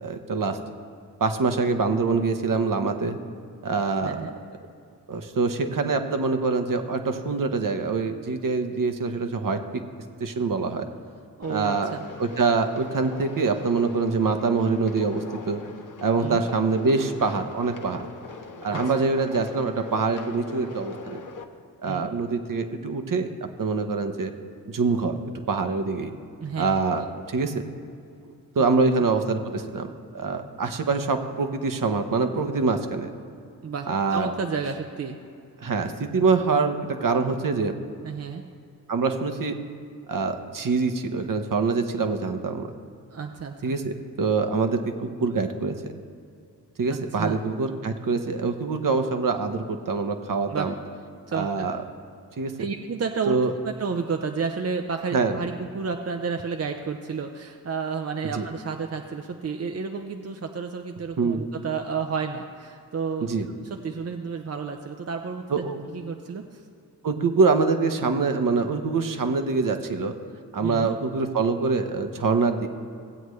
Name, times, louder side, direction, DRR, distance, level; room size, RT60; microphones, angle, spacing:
voice 1, 0.0-0.6 1.2-3.2 3.6-4.2 5.1-9.6 10.2-10.8 11.5-11.9 12.2-15.6 16.0-18.0 18.6-21.2 21.8-23.3 23.6-24.3 24.7-25.1 25.5-26.1 26.6-27.5 28.5-29.9 30.1-33.1 33.9-34.3 35.6-36.8 37.0-37.7 38.9-39.5 40.1-42.7 43.6-45.9 46.8-50.7 51.3-51.8 52.4-52.5 53.3-53.5 55.1-55.4 58.3-58.5 61.2-61.4 63.2-63.5 65.5-65.8 67.0-70.1 70.5-72.7, right 4 dB, 55° right, 7 dB, 1.0 m, -25 dB
voice 2, 4.0-4.3 11.4-12.1 16.2-16.4 18.7-18.8 21.9-22.1 26.4-26.8 28.8-28.9 33.6-35.2 38.0-38.4 43.1-43.7 46.9-47.4 50.5-50.7 51.3-51.7 52.6-53.4 53.6-65.4 65.9-66.6 70.6-70.9, right 5 dB, 40° right, 4 dB, 0.7 m, -31 dB
sound 1, 11.4-21.4, left 4 dB, 50° left, 1.0 m, -41 dB
17.0 x 7.9 x 3.2 m, 2.5 s
cardioid pair, 55°, 39 cm